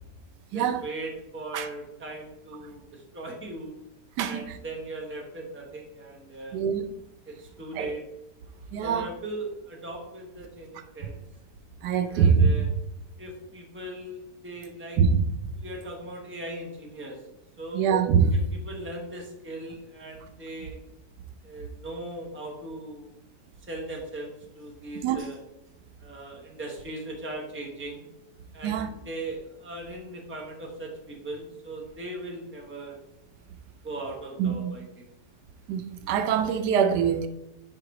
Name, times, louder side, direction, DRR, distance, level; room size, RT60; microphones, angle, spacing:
voice 1, 0.5-3.7 4.2-6.6 7.3-8.0 8.8-11.2 12.0-12.7 13.2-15.0 15.5-17.2 17.6-17.8 18.5-20.8 21.4-23.2 23.7-25.4 26.0-28.1 28.5-33.0 33.8-34.9, right 1 dB, 10° right, 0.9 m, -39 dB
voice 2, 6.5-6.9 7.7-7.9 8.7-9.1 11.8-12.6 15.0-15.2 17.7-18.5 25.0-25.2 28.6-28.9 34.4-34.6 35.7-37.3, right 6 dB, 85° right, 1.2 m, -23 dB
4.9 x 4.7 x 4.7 m
omnidirectional pair, 1.8 m